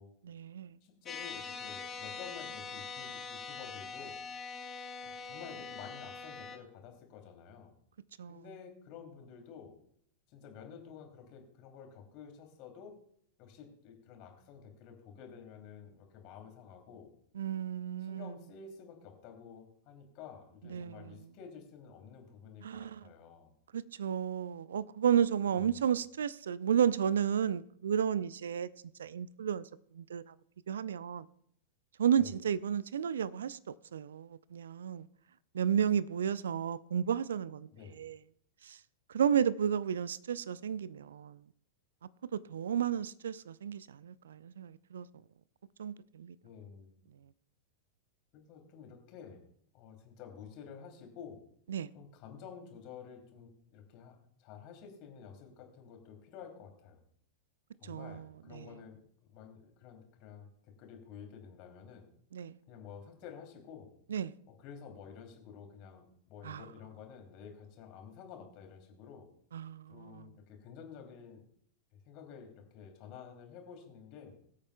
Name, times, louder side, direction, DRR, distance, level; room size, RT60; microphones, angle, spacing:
voice 1, 0.2-0.8 8.2-8.4 17.3-18.3 20.7-21.2 22.6-23.0 23.7-28.7 29.0-30.3 30.7-31.3 32.0-35.1 35.5-37.7 38.0-38.2 38.6-38.8 39.1-41.4 42.3-45.1 45.8-46.4 51.7-51.9 57.8-58.7 62.3-62.6 64.1-64.3 66.4-66.6 69.5-70.3, right 8 dB, 65° right, 0.4 m, -32 dB
voice 2, 0.8-4.2 5.0-7.7 8.3-9.8 10.3-12.9 13.4-17.1 18.0-23.5 25.5-25.9 32.2-32.3 37.7-38.0 46.4-47.1 48.3-49.4 49.7-51.4 51.9-57.0 57.8-59.0 59.3-62.1 62.7-63.9 64.5-69.3 69.9-71.4 71.9-74.4, left 7 dB, 40° left, 2.9 m, -51 dB
sound 1, 1.1-6.6, left 5 dB, 20° left, 1.4 m, -43 dB
22.0 x 8.6 x 2.3 m
figure-of-eight pair, 95°, 0 cm